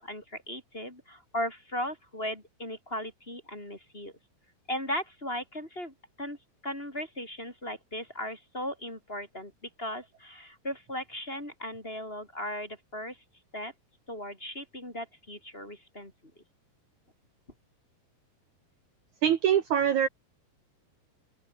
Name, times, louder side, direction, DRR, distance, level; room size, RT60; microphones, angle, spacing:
voice 1, 0.0-4.1 4.7-6.4 6.6-13.2 13.5-13.7 14.1-16.1, left 1 dB, 15° left, 4.5 m, -37 dB
voice 2, 19.2-20.1, right 9 dB, 60° right, 2.4 m, -23 dB
open air
omnidirectional pair, 4.3 m